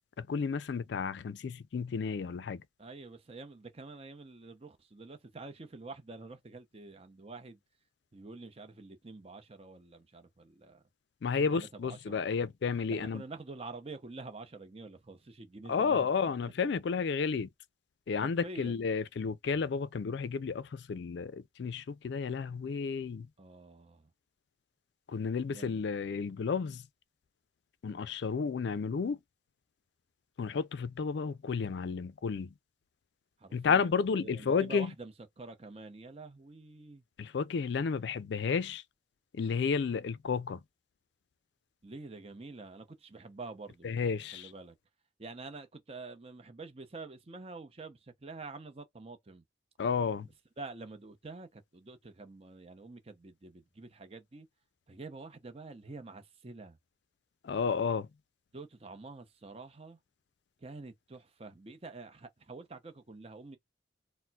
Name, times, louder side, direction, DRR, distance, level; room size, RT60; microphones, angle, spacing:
voice 1, 0.2-2.6 11.2-13.2 15.7-17.5 18.1-23.3 25.1-26.8 27.8-29.2 30.4-32.5 33.5-34.9 37.2-38.8 39.3-40.6 43.8-44.5 49.8-50.3 57.4-58.1, left 5 dB, 65° left, 0.4 m, -32 dB
voice 2, 2.8-7.6 8.1-10.8 11.5-12.3 12.9-16.1 18.2-18.8 23.4-24.1 25.4-25.9 33.4-37.0 41.8-43.9 44.3-44.8 45.2-49.4 50.6-54.5 54.9-56.8 58.5-60.0 60.6-63.6, right 3 dB, 30° right, 0.6 m, -47 dB
4.2 x 2.1 x 2.3 m
head